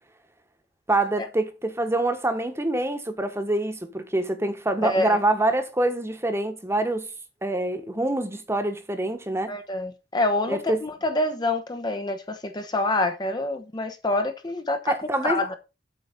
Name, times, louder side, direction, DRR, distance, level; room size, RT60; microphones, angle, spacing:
voice 1, 0.9-7.1 7.4-9.5 10.5-10.8 14.9-15.4, right 2 dB, 15° right, 1.3 m, -25 dB
voice 2, 9.5-14.9 15.2-15.5, left 2 dB, 25° left, 1.0 m, -26 dB
8.4 x 5.0 x 6.7 m
head